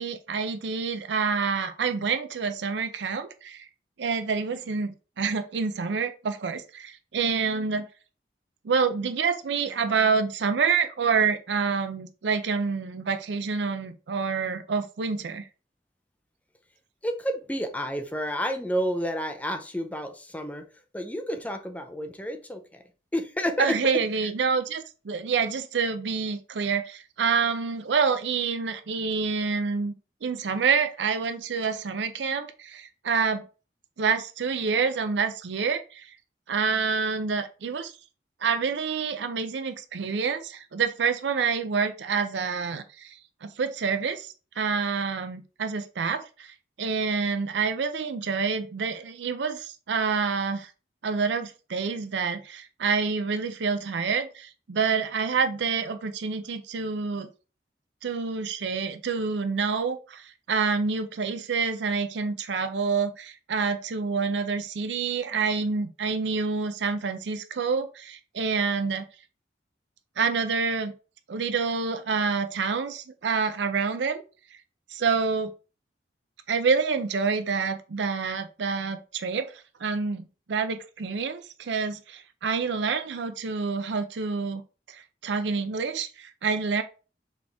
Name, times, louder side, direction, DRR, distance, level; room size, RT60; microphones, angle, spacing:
voice 1, 0.0-3.7 4.0-7.9 8.6-15.4 23.6-29.9 30.2-33.4 34.0-36.1 36.5-37.9 38.4-43.2 43.4-50.7 51.0-57.3 58.0-69.0 70.2-70.9 71.3-74.2 74.9-75.5 76.5-79.5 79.8-84.6 84.9-86.8, right 5 dB, 80° right, 0.5 m, -27 dB
voice 2, 17.0-20.7 20.9-22.8 23.1-23.8, equal, 10° left, 0.4 m, -30 dB
4.1 x 3.0 x 3.4 m
head